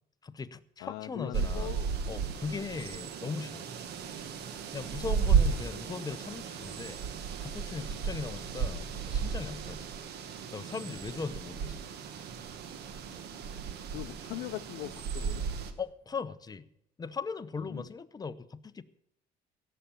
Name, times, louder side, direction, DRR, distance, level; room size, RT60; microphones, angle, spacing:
voice 1, 0.2-1.8 2.1-3.6 4.7-7.0 7.4-9.9 10.5-11.8 15.8-16.7 17.0-18.8, left 5 dB, 25° left, 11 dB, 0.7 m, -39 dB
voice 2, 0.8-1.9 13.9-15.4 17.7-17.9, left 17 dB, 90° left, 9 dB, 0.5 m, -40 dB
sound 1, 1.3-15.7, right 6 dB, 75° right, 1.5 m, -34 dB
17.0 x 7.0 x 8.9 m, 0.79 s
cardioid pair, 110°, 17 cm